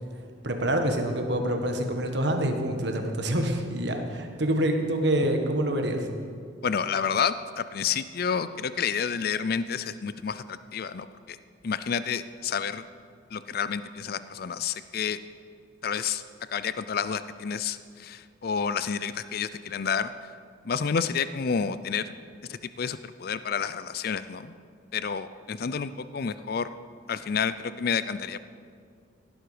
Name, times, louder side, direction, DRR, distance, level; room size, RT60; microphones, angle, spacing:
voice 1, 0.4-6.1, right 1 dB, 60° right, 4 dB, 1.6 m, -26 dB
voice 2, 6.6-11.4 11.6-12.8 13.3-15.2 15.8-16.2 16.5-20.1 20.6-22.0 22.5-24.5 24.9-26.7 27.1-28.4, left 6 dB, 50° left, 14 dB, 0.4 m, -29 dB
17.0 x 11.5 x 5.0 m, 2.2 s
head